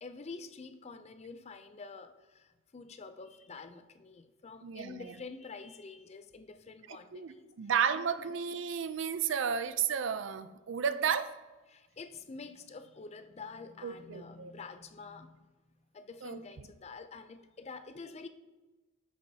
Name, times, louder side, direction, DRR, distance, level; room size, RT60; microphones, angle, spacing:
voice 1, 0.0-7.5 7.9-8.1 11.7-15.4 15.9-18.3, left 4 dB, 30° left, 10 dB, 0.4 m, -47 dB
voice 2, 4.6-5.1 7.1-11.3 13.8-14.5 16.2-16.4, right 7 dB, 60° right, 12 dB, 0.4 m, -32 dB
9.8 x 6.8 x 2.7 m, 1.2 s
head